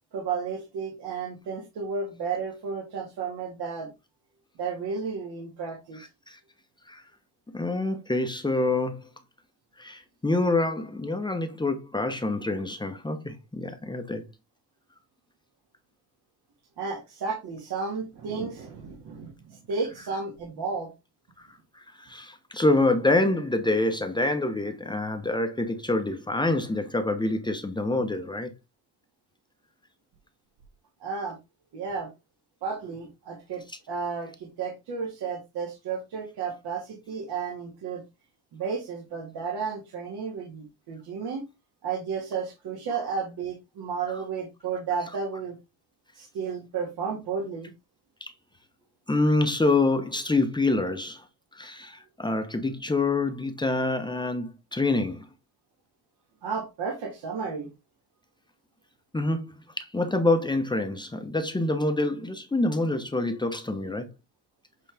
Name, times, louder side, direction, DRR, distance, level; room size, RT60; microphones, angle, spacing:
voice 1, 0.1-3.9 4.6-6.1 16.8-20.9 31.0-31.4 31.7-32.1 32.6-38.0 38.5-41.4 41.8-45.5 46.1-47.7 56.4-57.7, right 5 dB, 65° right, 2.1 m, -33 dB
voice 2, 7.5-9.0 9.8-14.2 21.4-21.5 21.8-28.5 48.2-48.3 49.1-51.2 51.5-55.3 59.1-64.1, left 2 dB, 10° left, 0.9 m, -26 dB
8.0 x 4.0 x 3.4 m
cardioid pair, 130°, 41 cm